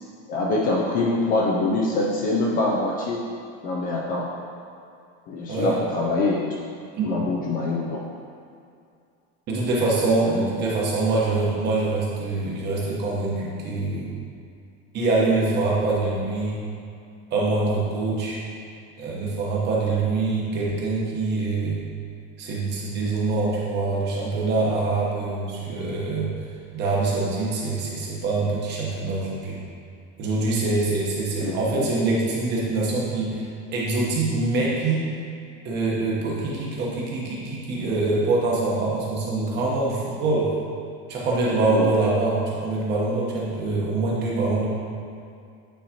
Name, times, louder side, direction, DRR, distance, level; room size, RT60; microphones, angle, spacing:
voice 1, 0.3-3.3 3.6-4.3 5.3-6.5 7.0-8.0 10.2-10.5 31.4-31.9 41.7-42.0, left 2 dB, 30° left, -2 dB, 0.4 m, -24 dB
voice 2, 5.5-5.8 7.0-7.2 9.5-14.2 14.9-16.6 17.3-18.4 19.0-21.8 22.4-26.3 26.7-29.6 30.2-35.1 35.6-40.5 41.1-44.7, right 3 dB, 35° right, -4 dB, 1.1 m, -24 dB
9.0 x 4.1 x 2.9 m, 2.4 s
cardioid pair, 180°, 30 cm